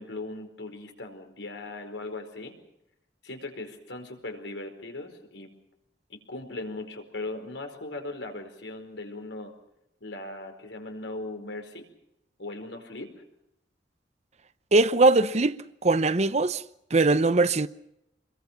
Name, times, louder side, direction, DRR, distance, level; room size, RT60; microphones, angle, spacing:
voice 1, 0.0-2.6 3.2-5.5 6.1-9.5 10.0-11.9 12.4-13.2, left 2 dB, 85° left, 4.7 m, -38 dB
voice 2, 14.7-16.6 16.9-17.7, right 3 dB, 40° right, 0.8 m, -21 dB
26.5 x 22.0 x 5.9 m
head